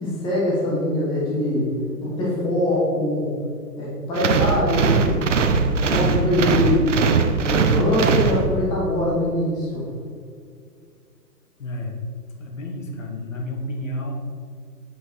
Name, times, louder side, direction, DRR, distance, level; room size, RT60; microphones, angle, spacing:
voice 1, 0.0-1.6 2.0-3.3 3.8-5.2 5.8-6.9 7.4-9.8, left 1 dB, 10° left, -6 dB, 1.3 m, -23 dB
sound 1, 4.2-8.9, right 5 dB, 50° right, 0.8 m, -20 dB
voice 2, 11.6-12.0 12.4-14.1, left 1 dB, 50° left, 2 dB, 1.6 m, -31 dB
8.0 x 7.4 x 4.6 m, 2.2 s
hypercardioid pair, 155°, 49 cm